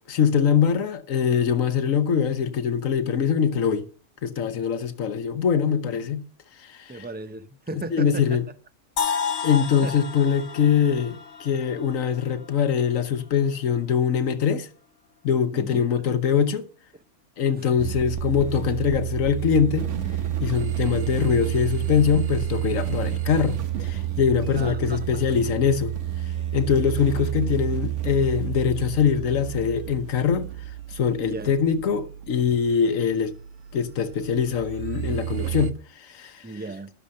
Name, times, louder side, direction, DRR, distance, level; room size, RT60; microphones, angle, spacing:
voice 1, 0.0-3.9 4.2-6.2 6.6-7.0 7.7-8.5 9.4-14.7 15.2-16.7 17.4-19.9 20.4-25.9 26.5-30.5 30.9-33.4 33.7-36.4, left 7 dB, 90° left, 1.4 m, -23 dB
voice 2, 6.9-8.4 9.8-9.9 15.5-16.0 17.6-17.7 24.5-25.5 31.2-31.5 36.4-36.9, right 2 dB, 10° right, 0.4 m, -36 dB
sound 1, 9.0-12.9, left 6 dB, 60° left, 1.1 m, -31 dB
sound 2, 17.8-35.7, right 12 dB, 70° right, 1.2 m, -30 dB
12.0 x 7.1 x 6.4 m
omnidirectional pair, 1.3 m